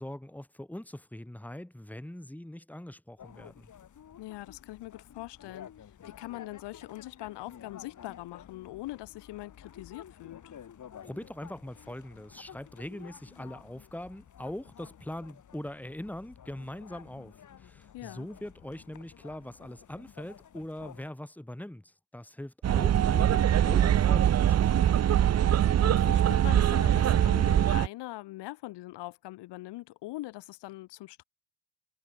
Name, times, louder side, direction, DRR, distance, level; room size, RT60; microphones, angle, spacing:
voice 1, 0.0-3.7 11.0-25.0, left 1 dB, 5° left, 4.6 m, -42 dB
sound 1, 3.2-21.1, left 9 dB, 45° left, 3.8 m, -52 dB
voice 2, 4.2-5.7 6.0-10.6 17.9-18.3 25.8-31.2, left 18 dB, 85° left, 4.4 m, -42 dB
sound 2, 22.6-27.9, right 10 dB, 40° right, 0.8 m, -23 dB
cardioid pair, 110°, 40 cm